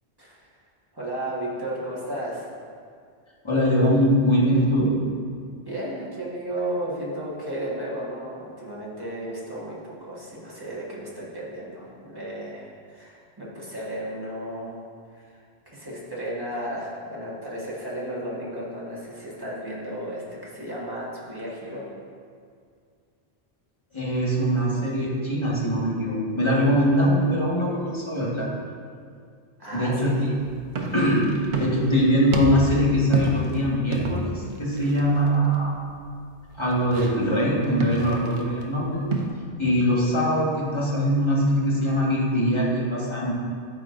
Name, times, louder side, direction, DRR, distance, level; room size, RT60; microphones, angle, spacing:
voice 1, 0.9-2.5 5.6-14.8 15.1-15.4 15.7-21.9 29.6-30.2, right 1 dB, 20° right, -7 dB, 1.4 m, -34 dB
voice 2, 3.4-5.0 23.9-28.5 29.7-30.4 30.9-31.2 31.6-35.7 36.5-39.0 39.6-43.3, equal, 25° left, -5 dB, 1.5 m, -22 dB
sound 1, 30.4-39.3, right 3 dB, 80° right, 1.0 m, -31 dB
12.5 x 4.6 x 2.5 m, 2.2 s
omnidirectional pair, 1.1 m